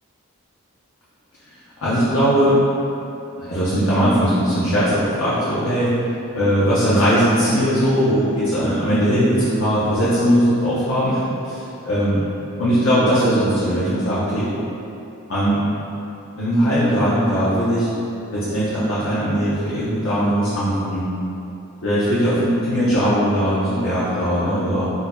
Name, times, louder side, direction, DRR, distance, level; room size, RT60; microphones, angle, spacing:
voice 1, 1.5-2.6 3.4-5.9 6.4-12.3 12.6-14.5 15.3-15.7 16.4-17.9 18.3-21.1 21.8-24.9, equal, 65° left, -10 dB, 0.6 m, -19 dB
4.4 x 2.6 x 2.2 m, 2.8 s
head